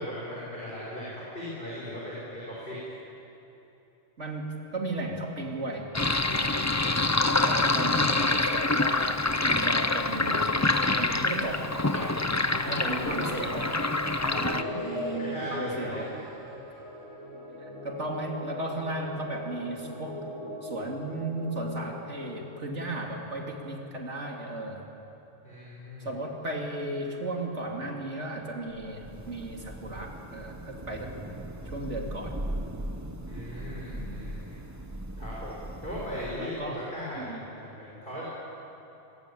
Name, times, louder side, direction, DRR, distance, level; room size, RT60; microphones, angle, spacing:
voice 1, 0.0-2.8 12.4-13.7 14.6-15.0 15.3-16.0 25.4-26.1 33.3-34.6 35.2-38.2, equal, 50° left, -6 dB, 6.3 m, -38 dB
voice 2, 4.2-6.7 7.4-10.6 11.0-12.3 12.7-13.7 14.2-16.1 17.6-20.3 20.6-24.9 26.0-31.1 31.7-32.4 33.9-34.2 36.4-36.9 37.2-37.4, right 2 dB, 75° right, 0 dB, 3.5 m, -35 dB
Sink (filling or washing), 5.9-14.6, left 2 dB, 15° left, 0.7 m, -26 dB
sound 1, 14.3-21.9, left 1 dB, 80° left, 5.4 m, -39 dB
Thunder / Rain, 28.7-36.7, right 1 dB, 15° right, 1.3 m, -39 dB
25.5 x 23.0 x 8.7 m, 3.0 s
omnidirectional pair, 1.2 m